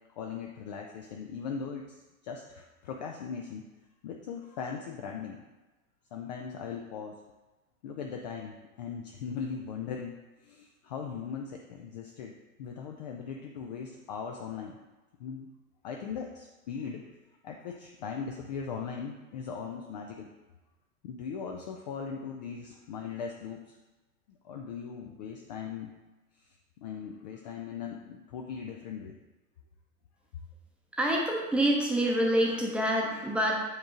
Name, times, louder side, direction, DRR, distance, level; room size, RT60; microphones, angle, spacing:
voice 1, 0.2-2.0 2.2-3.6 4.0-5.4 6.1-7.2 7.8-14.8 15.2-15.5 15.8-17.0 17.4-20.3 21.0-23.8 24.3-25.9 26.4-26.5 26.8-29.2, left 6 dB, 30° left, 2 dB, 0.4 m, -39 dB
voice 2, 30.9-33.6, right 1 dB, ahead, -2 dB, 0.8 m, -26 dB
8.1 x 3.6 x 4.7 m, 1.1 s
figure-of-eight pair, 95°, 46 cm